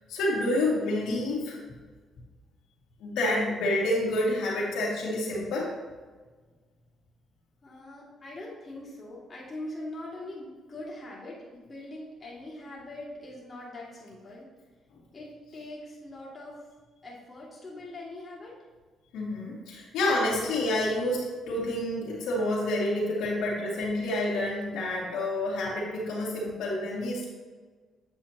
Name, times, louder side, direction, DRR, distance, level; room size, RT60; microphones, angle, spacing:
voice 1, 0.0-1.6 3.0-5.7 19.1-27.3, left 1 dB, 90° left, -5 dB, 2.3 m, -28 dB
voice 2, 7.6-14.5 15.1-16.6 17.0-18.6, left 1 dB, 30° left, -5 dB, 2.5 m, -42 dB
8.4 x 7.4 x 2.9 m, 1.4 s
cardioid pair, 90°, 0 cm